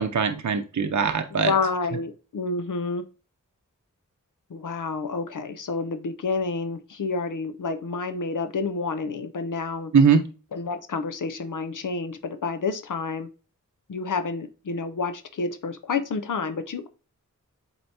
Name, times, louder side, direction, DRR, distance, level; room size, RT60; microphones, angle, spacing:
voice 1, 0.0-1.5 9.9-10.3, right 6 dB, 65° right, 0.6 m, -21 dB
voice 2, 1.4-3.0 4.5-9.9 10.5-13.3 13.9-16.9, left 4 dB, 70° left, 0.6 m, -29 dB
7.7 x 4.4 x 2.8 m
wide cardioid pair, 85°, 32 cm